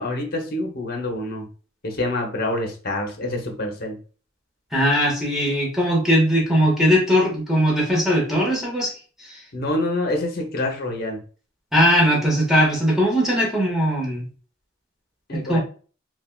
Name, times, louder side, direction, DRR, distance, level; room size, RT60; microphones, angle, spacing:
voice 1, 0.0-1.5 1.8-4.0 9.5-11.2 15.3-15.6, left 1 dB, 55° left, 3 dB, 0.7 m, -26 dB
voice 2, 4.7-8.9 9.2-9.3 11.7-14.2 15.3-15.6, equal, ahead, -3 dB, 0.8 m, -19 dB
3.4 x 2.1 x 2.2 m, 0.39 s
head